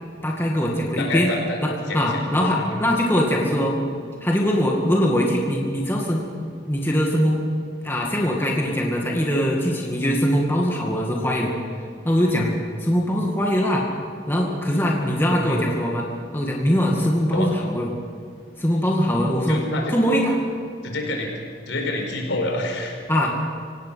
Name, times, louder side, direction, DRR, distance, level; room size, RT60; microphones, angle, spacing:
voice 1, 0.2-1.3 1.6-3.8 4.2-6.3 6.7-7.4 7.8-11.6 12.0-12.5 12.8-13.9 14.3-16.1 16.3-17.9 18.6-19.6 19.9-20.4 23.1-23.5, equal, 10° left, -1 dB, 2.1 m, -22 dB
voice 2, 1.0-1.6 1.9-2.1 2.6-2.8 15.3-15.6 17.3-17.5 19.5-19.9 20.8-21.3 21.7-22.9, left 2 dB, 70° left, 2 dB, 5.0 m, -27 dB
26.0 x 17.5 x 5.8 m, 2.3 s
head